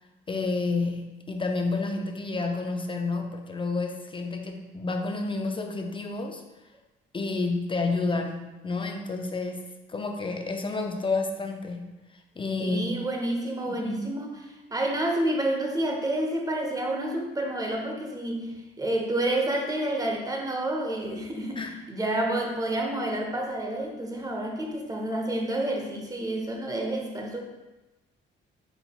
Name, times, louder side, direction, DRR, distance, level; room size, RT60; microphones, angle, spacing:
voice 1, 0.3-6.4 7.1-12.0 12.4-13.0 13.7-14.1 21.6-21.8, left 3 dB, 25° left, 4 dB, 0.4 m, -30 dB
voice 2, 12.6-21.6 21.9-27.4, right 1 dB, 20° right, 1 dB, 0.8 m, -29 dB
5.4 x 3.9 x 2.3 m, 1.1 s
cardioid pair, 90°, 20 cm